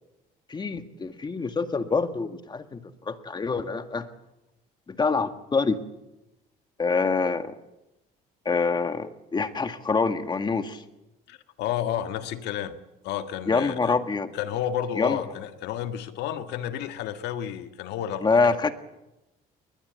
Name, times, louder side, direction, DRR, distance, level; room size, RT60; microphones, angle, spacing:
voice 1, 0.5-2.8 3.1-4.1 5.0-5.8 6.8-7.5 8.5-10.8 13.5-14.3 15.0-15.2 18.2-18.7, left 4 dB, 25° left, 8 dB, 1.8 m, -25 dB
voice 2, 11.3-12.8 13.0-13.9 14.3-18.7, left 10 dB, 85° left, 8 dB, 1.7 m, -31 dB
21.5 x 20.0 x 8.0 m, 0.95 s
cardioid pair, 110°, 17 cm